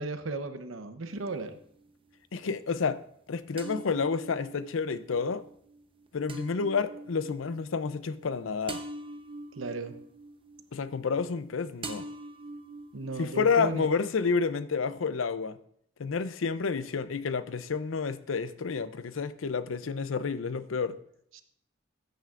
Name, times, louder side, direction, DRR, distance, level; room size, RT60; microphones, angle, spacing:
voice 1, 0.0-1.5 9.6-9.9 12.9-13.9 21.3-21.4, right 3 dB, 80° right, 0.9 m, -35 dB
sound 1, 1.1-1.9 3.6-11.5 11.8-13.9, right 2 dB, 25° right, 0.8 m, -44 dB
voice 2, 2.3-3.0 3.3-5.4 6.1-8.8 10.7-12.1 13.2-15.6 16.0-21.0, left 5 dB, 75° left, 0.5 m, -30 dB
14.0 x 9.1 x 2.5 m
head